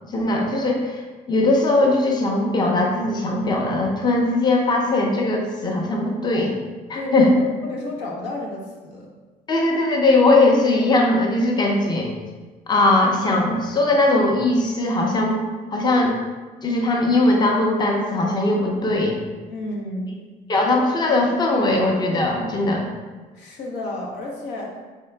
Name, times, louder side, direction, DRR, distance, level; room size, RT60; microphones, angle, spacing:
voice 1, 0.1-1.0 1.3-6.6 6.9-7.4 9.5-12.1 12.7-15.4 15.7-16.2 16.6-19.2 20.5-22.9, left 2 dB, 25° left, 0 dB, 0.6 m, -19 dB
voice 2, 6.9-7.3 7.6-9.1 19.5-20.2 23.3-24.8, left 1 dB, 85° left, -2 dB, 0.9 m, -31 dB
3.7 x 3.6 x 3.3 m, 1.3 s
cardioid pair, 110°, 17 cm